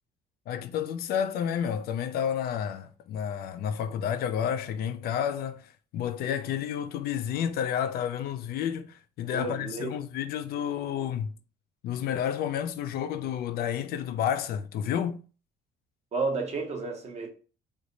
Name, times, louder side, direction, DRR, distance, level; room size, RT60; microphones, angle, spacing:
voice 1, 0.5-11.3 11.8-15.2, left 9 dB, 65° left, 0.4 m, -30 dB
voice 2, 9.3-9.9 16.1-17.3, right 4 dB, 40° right, 0.9 m, -31 dB
3.2 x 2.1 x 3.8 m
cardioid pair, 110°, 17 cm